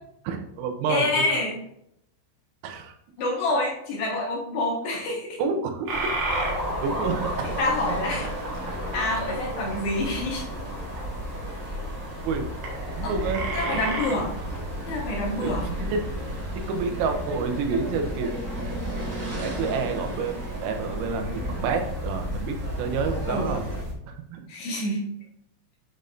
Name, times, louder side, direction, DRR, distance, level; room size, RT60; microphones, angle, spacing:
voice 1, 0.3-1.4 2.6-3.0 4.9-5.0 5.4-6.2 6.8-7.6 12.2-12.5 12.9-13.8 15.4-16.0 16.6-18.3 18.6-18.8 19.2-23.7 24.1-24.4, right 4 dB, 90° right, 5 dB, 3.5 m, -29 dB
voice 2, 0.9-1.6 3.2-5.4 7.6-8.3 8.7-10.5 13.0-13.2 13.5-14.4 14.9-15.7 23.3-23.7 24.5-25.1, left 2 dB, 70° left, -3 dB, 3.0 m, -27 dB
sound 1, 5.9-23.9, equal, 60° right, 2.5 m, -34 dB
sound 2, 6.2-23.8, right 1 dB, 40° right, 2.3 m, -36 dB
8.8 x 5.1 x 2.6 m, 0.75 s
omnidirectional pair, 5.8 m